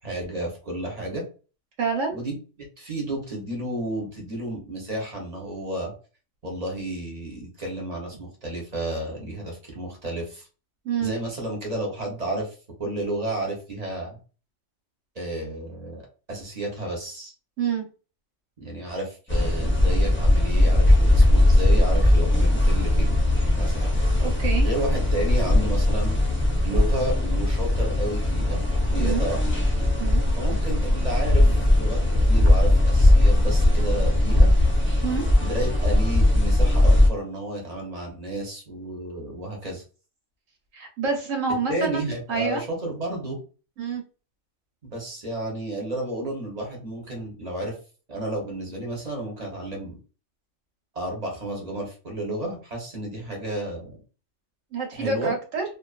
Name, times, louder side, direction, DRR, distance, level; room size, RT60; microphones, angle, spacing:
voice 1, 0.0-1.2 2.1-5.9 6.4-10.5 11.0-14.2 15.1-16.0 16.3-17.3 18.6-23.2 23.6-23.9 24.6-26.2 26.6-29.6 30.4-34.5 35.4-39.8 41.7-43.4 44.8-47.8 48.1-50.0 50.9-54.0 54.9-55.3, right 1 dB, 35° right, -1 dB, 0.9 m, -32 dB
voice 2, 1.8-2.2 10.8-11.1 17.6-17.8 24.2-24.7 29.0-29.3 30.0-30.2 35.0-35.2 40.7-42.6 43.8-44.0 54.7-55.6, right 5 dB, 90° right, 1 dB, 1.2 m, -27 dB
sound 1, 19.3-37.1, left 1 dB, 15° left, 0.4 m, -19 dB
2.6 x 2.4 x 2.4 m, 0.36 s
omnidirectional pair, 1.3 m